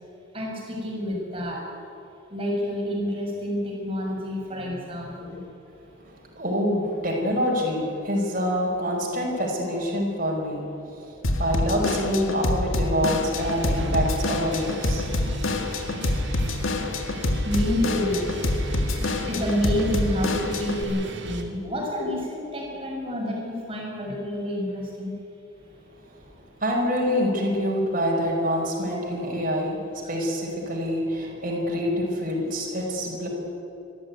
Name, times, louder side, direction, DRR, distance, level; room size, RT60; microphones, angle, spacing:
voice 1, 0.3-1.6 2.3-5.4 17.1-18.3 18.7-25.1 30.0-30.1, equal, 30° right, -2 dB, 6.2 m, -29 dB
voice 2, 6.0-10.6 10.9-15.0 26.6-33.3, equal, 45° right, -1 dB, 5.0 m, -26 dB
Drum kit / Drum, 11.2-20.8, left 2 dB, 90° left, 1.9 m, -26 dB
sound 1, 13.3-21.4, right 2 dB, 60° right, 2.3 m, -37 dB
23.5 x 14.0 x 9.5 m, 2.8 s
head